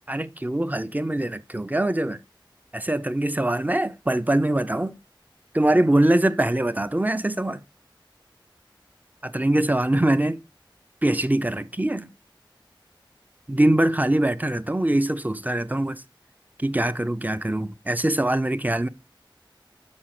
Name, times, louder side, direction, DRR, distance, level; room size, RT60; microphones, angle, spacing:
voice 1, 0.1-2.2 2.7-5.0 5.5-7.6 9.2-10.4 11.0-12.1 13.5-16.0 16.6-18.9, right 1 dB, 20° right, 0.6 m, -23 dB
6.2 x 4.7 x 5.8 m
wide cardioid pair, 40°, 9 cm